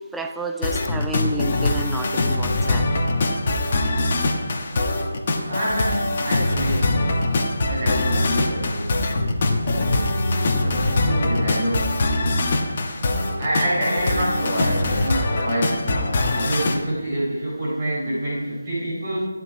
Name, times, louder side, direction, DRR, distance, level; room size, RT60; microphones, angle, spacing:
voice 1, 0.0-2.9, right 2 dB, 5° right, 4 dB, 0.6 m, -31 dB
sound 1, 0.6-16.8, left 2 dB, 35° left, 1.4 m, -23 dB
voice 2, 5.5-7.4 7.7-9.1 9.6-10.3 10.6-11.9 13.4-19.3, right 1 dB, 30° right, -6 dB, 4.0 m, -27 dB
sound 2, 7.6-13.6, equal, 75° right, 2.2 m, -33 dB
14.0 x 10.0 x 4.8 m, 1.3 s
figure-of-eight pair, 155°, 0 cm